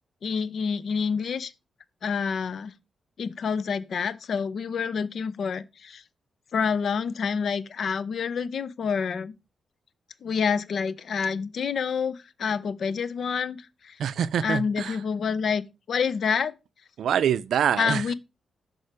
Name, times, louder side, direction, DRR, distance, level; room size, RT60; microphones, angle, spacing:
voice 1, 0.2-1.5 2.0-2.7 3.2-6.0 6.5-9.3 10.2-14.0 14.4-15.6 15.9-16.5 17.8-18.1, left 6 dB, 65° left, 0.6 m, -28 dB
voice 2, 14.0-15.0 17.0-18.1, right 9 dB, 80° right, 0.4 m, -25 dB
6.6 x 4.5 x 4.8 m
cardioid pair, 95°, 0 cm